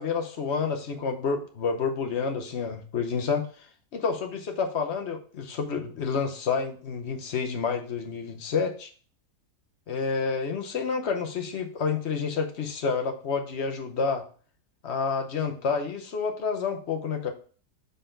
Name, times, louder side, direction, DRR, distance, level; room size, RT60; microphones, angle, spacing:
voice 1, 0.0-3.5 3.9-8.9 9.9-14.2 14.8-17.3, left 5 dB, 55° left, 5 dB, 0.9 m, -29 dB
6.7 x 4.1 x 3.8 m, 0.41 s
omnidirectional pair, 1.8 m